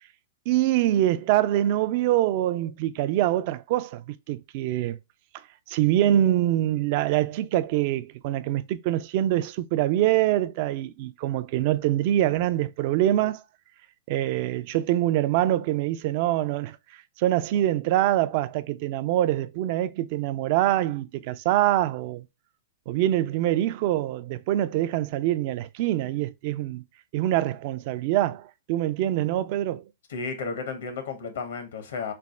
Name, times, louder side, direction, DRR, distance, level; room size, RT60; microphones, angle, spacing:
voice 1, 0.5-5.0 5.7-13.4 14.1-16.8 17.2-22.3 22.9-26.8 27.1-29.8, right 13 dB, 50° right, 0.3 m, -24 dB
voice 2, 30.1-32.1, left 4 dB, 70° left, 0.9 m, -33 dB
3.3 x 2.0 x 4.2 m
hypercardioid pair, 115°, 0 cm